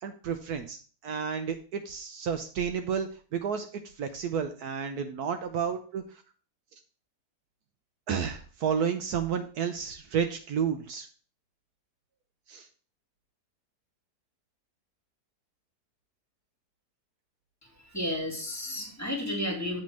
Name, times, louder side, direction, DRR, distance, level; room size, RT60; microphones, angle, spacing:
voice 1, 0.0-6.0 8.1-11.1 12.5-12.7, right 7 dB, 70° right, 7 dB, 1.1 m, -31 dB
voice 2, 17.8-19.8, left 1 dB, 10° left, 0 dB, 2.0 m, -32 dB
7.5 x 3.7 x 6.1 m, 0.39 s
omnidirectional pair, 1.8 m